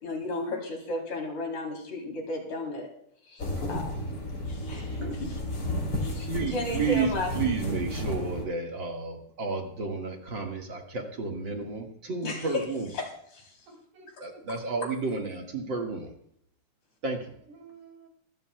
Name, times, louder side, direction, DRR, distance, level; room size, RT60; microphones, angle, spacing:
voice 1, 0.0-2.9 3.3-4.0 4.5-5.4 6.0-7.3 12.2-12.6 12.9-13.5, left 2 dB, 70° left, 0 dB, 4.9 m, -34 dB
sound 1, 3.4-8.4, left 1 dB, 35° left, 4.2 m, -33 dB
voice 2, 3.5-4.0 13.7-15.1 17.5-18.1, right 4 dB, 85° right, 0 dB, 5.4 m, -53 dB
voice 3, 6.3-12.9 14.2-16.1 17.0-17.4, right 4 dB, 45° right, 2 dB, 2.3 m, -32 dB
26.5 x 12.5 x 2.3 m, 0.70 s
omnidirectional pair, 3.4 m